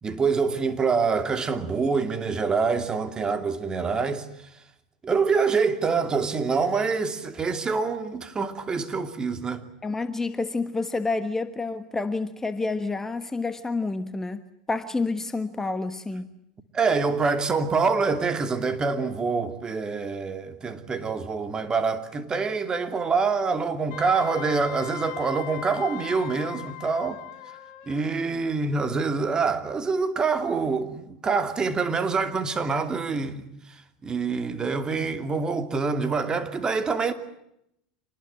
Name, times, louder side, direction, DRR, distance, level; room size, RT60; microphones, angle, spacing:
voice 1, 0.0-4.3 5.0-9.6 16.7-27.2 27.9-33.5 34.0-37.1, right 4 dB, 25° right, 2.7 m, -26 dB
voice 2, 9.8-14.4 14.7-16.3, left 3 dB, 15° left, 1.3 m, -29 dB
Wind instrument woodwind instrument, 23.9-28.1, left 15 dB, 60° left, 4.2 m, -39 dB
26.5 x 20.0 x 9.0 m
hypercardioid pair, 95°, 3 cm